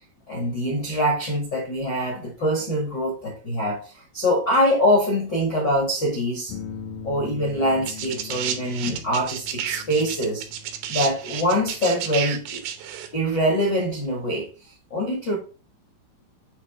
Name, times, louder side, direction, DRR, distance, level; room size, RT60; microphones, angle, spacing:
voice 1, 0.3-6.5 7.0-10.5 10.9-12.6 13.1-14.5 14.9-15.4, equal, 65° left, 1.1 m, -24 dB
sound 1, 6.5-13.4, left 5 dB, 85° left, 3.3 m, -41 dB
sound 2, 7.9-13.1 14.1-14.2, right 10 dB, 80° right, 2.3 m, -31 dB
8.3 x 3.2 x 5.2 m
omnidirectional pair, 5.7 m